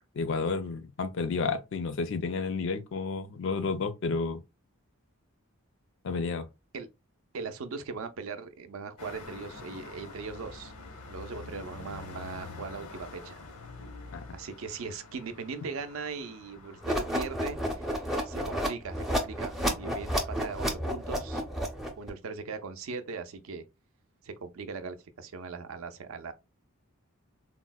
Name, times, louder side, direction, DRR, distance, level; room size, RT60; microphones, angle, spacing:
voice 1, 0.2-4.4 6.0-6.5 14.1-14.2, left 4 dB, 55° left, 0.4 m, -31 dB
voice 2, 7.3-10.7 11.1-13.4 14.3-21.4 22.0-23.6 24.2-26.3, right 4 dB, 65° right, 0.4 m, -39 dB
sound 1, 9.0-17.4, left 3 dB, 80° left, 0.7 m, -46 dB
sound 2, 16.8-22.1, equal, ahead, 0.5 m, -31 dB
4.2 x 2.0 x 2.2 m
head